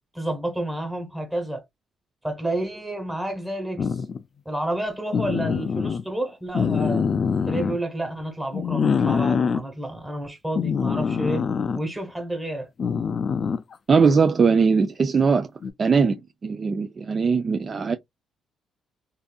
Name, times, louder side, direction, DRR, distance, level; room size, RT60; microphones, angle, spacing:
voice 1, 0.1-1.6 2.2-4.0 4.4-7.1 7.5-11.4 11.7-12.7, right 1 dB, 5° right, 1.3 m, -30 dB
sound 1, 3.8-4.2 5.1-6.0 6.5-7.8 8.5-9.6 10.6-11.8 12.8-13.7 15.6-15.7, left 6 dB, 45° left, 0.3 m, -24 dB
voice 2, 13.9-15.5 15.8-16.2 16.4-18.0, right 5 dB, 40° right, 0.3 m, -20 dB
2.6 x 2.5 x 2.2 m
cardioid pair, 90°, 0 cm